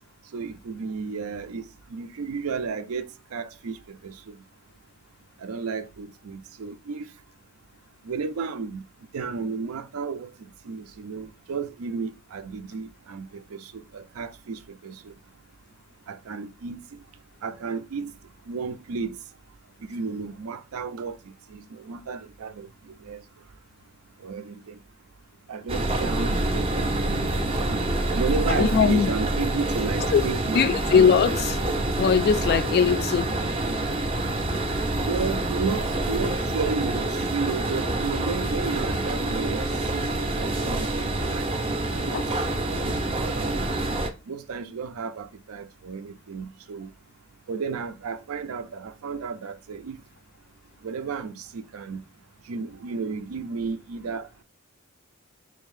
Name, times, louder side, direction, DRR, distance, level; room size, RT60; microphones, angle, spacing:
voice 1, 0.3-1.6 1.9-4.4 5.4-7.1 8.1-8.8 9.1-10.3 10.7-15.1 16.1-17.0 17.4-18.1 18.5-19.2 19.9-21.2 21.5-23.2 24.2-24.8 25.5-27.8 28.1-30.8 35.0-42.2 42.5-43.0 43.2-43.8 44.3-46.9 47.5-50.0 50.8-52.0 52.5-54.4, right 5 dB, 85° right, 0.4 m, -33 dB
sound 1, 25.7-44.1, right 2 dB, 25° right, 0.5 m, -27 dB
voice 2, 28.5-29.1 30.1-30.3 30.5-31.6 32.0-33.3 42.1-42.2, left 6 dB, 50° left, 0.3 m, -20 dB
3.9 x 2.7 x 3.1 m
head